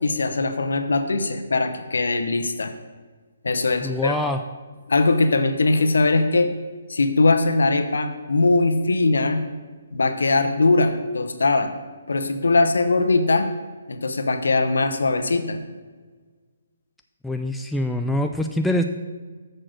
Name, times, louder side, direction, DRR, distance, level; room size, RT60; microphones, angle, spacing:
voice 1, 0.0-2.7 3.4-4.2 4.9-6.5 6.9-9.4 9.9-11.7 12.1-13.5 13.9-15.6, left 3 dB, 80° left, 9 dB, 0.8 m, -21 dB
voice 2, 3.8-4.4 17.2-18.8, left 1 dB, 5° left, 4 dB, 0.3 m, -24 dB
6.6 x 6.0 x 6.3 m, 1.4 s
hypercardioid pair, 150°, 0 cm